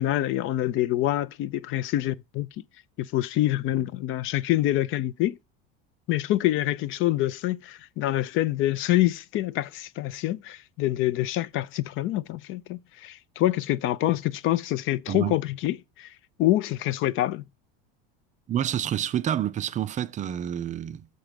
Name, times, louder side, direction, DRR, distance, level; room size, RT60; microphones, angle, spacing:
voice 1, 0.0-2.5 3.0-5.4 6.1-16.1 16.4-17.4, left 15 dB, 45° left, 0.5 m, -26 dB
voice 2, 15.1-15.4 18.5-21.1, right 10 dB, 25° right, 0.4 m, -28 dB
6.5 x 4.6 x 5.1 m
supercardioid pair, 120°, 29 cm